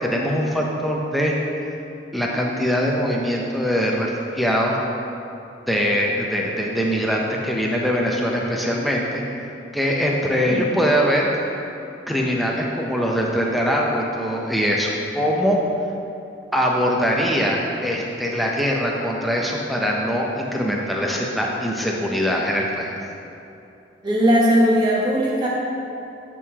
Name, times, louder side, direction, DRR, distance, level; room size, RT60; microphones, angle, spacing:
voice 1, 0.0-1.3 2.1-4.8 5.7-9.2 9.7-11.3 12.1-15.6 16.5-23.0, equal, ahead, -2 dB, 0.5 m, -22 dB
voice 2, 24.0-25.5, equal, 25° right, -6 dB, 1.1 m, -18 dB
10.5 x 3.7 x 2.9 m, 2.8 s
head